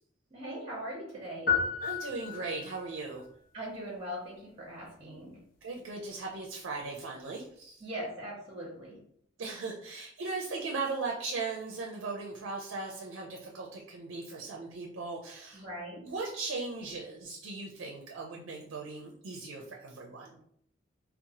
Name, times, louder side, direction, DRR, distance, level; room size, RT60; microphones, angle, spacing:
voice 1, 0.3-1.5 3.5-5.4 7.8-9.0 15.5-16.0, equal, 30° right, -2 dB, 0.6 m, -40 dB
sound 1, 1.5-2.9, left 6 dB, 50° left, 0.6 m, -31 dB
voice 2, 1.8-3.2 5.6-7.8 9.4-15.6 15.9-20.4, right 3 dB, 75° right, 0 dB, 0.4 m, -38 dB
2.8 x 2.0 x 2.7 m, 0.68 s
head